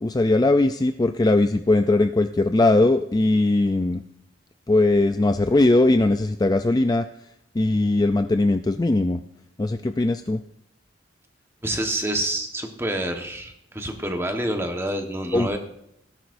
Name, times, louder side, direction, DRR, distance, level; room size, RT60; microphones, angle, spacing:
voice 1, 0.0-4.0 4.7-7.1 7.5-9.2 9.6-10.4 15.3-15.6, left 2 dB, 20° left, 8 dB, 0.3 m, -20 dB
voice 2, 11.6-15.6, right 1 dB, 15° right, 5 dB, 1.2 m, -27 dB
17.0 x 10.0 x 2.6 m, 0.78 s
head